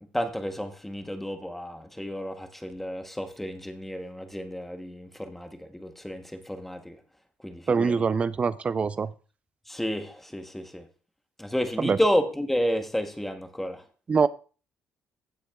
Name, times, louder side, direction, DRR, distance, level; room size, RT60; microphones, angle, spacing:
voice 1, 0.0-7.0 7.4-8.1 9.7-10.9 11.4-13.9, equal, 5° left, 0.9 m, -31 dB
voice 2, 7.7-9.1 11.8-12.0 14.1-14.3, right 5 dB, 25° right, 0.4 m, -24 dB
16.0 x 7.7 x 2.3 m
cardioid pair, 160°, 5 cm